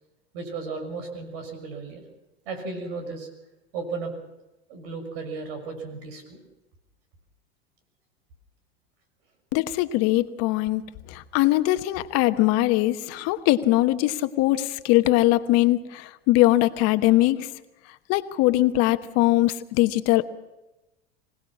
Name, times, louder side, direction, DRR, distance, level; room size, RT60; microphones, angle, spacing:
voice 1, 0.3-2.0 2.4-3.3 3.7-4.1 4.7-6.4, right 4 dB, 70° right, 7 dB, 6.2 m, -34 dB
voice 2, 9.5-10.8 11.1-17.5 18.1-20.3, left 16 dB, 55° left, 10 dB, 1.2 m, -21 dB
25.5 x 18.5 x 6.1 m, 0.97 s
hypercardioid pair, 95°, 31 cm